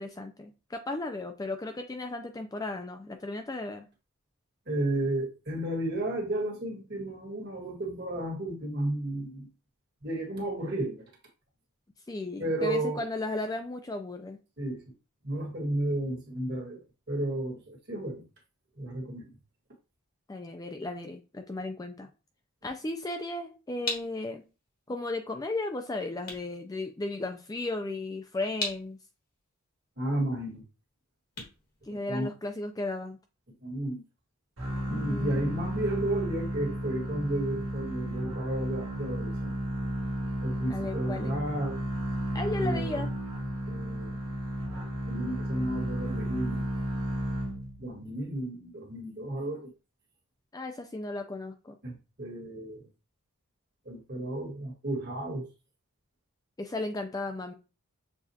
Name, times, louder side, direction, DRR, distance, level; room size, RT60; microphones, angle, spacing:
voice 1, 0.0-3.9 12.1-14.4 20.3-22.1 22.6-24.4 24.9-29.0 31.8-33.2 34.9-35.5 40.7-41.3 42.3-43.1 50.5-51.8 56.6-57.5, left 2 dB, 15° left, 0.3 m, -35 dB
voice 2, 4.7-9.5 10.0-11.0 12.4-13.0 14.6-14.8 15.2-16.8 17.1-18.2 18.8-19.3 30.0-30.6 31.9-32.3 33.6-34.0 34.9-39.5 40.4-41.8 42.6-43.1 43.7-44.2 45.1-46.7 47.8-49.7 51.8-52.8 53.8-55.5, right 1 dB, 45° right, 1.6 m, -33 dB
sound 1, 23.2-32.6, left 3 dB, 40° left, 1.5 m, -42 dB
sound 2, 34.6-48.0, right 1 dB, 65° right, 1.5 m, -33 dB
6.8 x 2.4 x 2.7 m
head